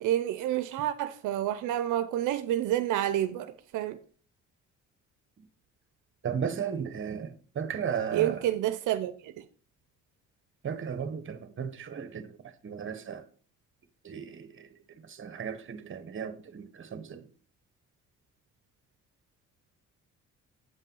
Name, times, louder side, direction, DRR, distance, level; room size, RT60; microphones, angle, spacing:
voice 1, 0.0-4.0 8.1-9.4, right 12 dB, 85° right, 0.6 m, -29 dB
voice 2, 6.2-8.5 10.6-13.2 14.0-17.3, right 7 dB, 40° right, 1.2 m, -35 dB
8.1 x 5.5 x 5.4 m
cardioid pair, 90°, 30 cm